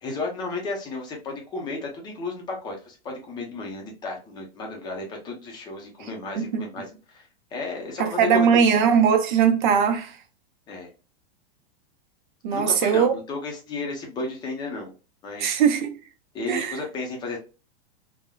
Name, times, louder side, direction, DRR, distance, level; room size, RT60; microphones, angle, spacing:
voice 1, 0.0-7.3 7.5-8.8 10.7-10.9 12.5-14.9 15.2-15.6 16.3-17.4, left 3 dB, 15° left, 0.6 m, -33 dB
voice 2, 8.0-10.2 12.4-13.1 15.4-16.0 16.5-16.8, right 7 dB, 50° right, 0.7 m, -20 dB
3.5 x 2.1 x 2.2 m
supercardioid pair, 160°, 30 cm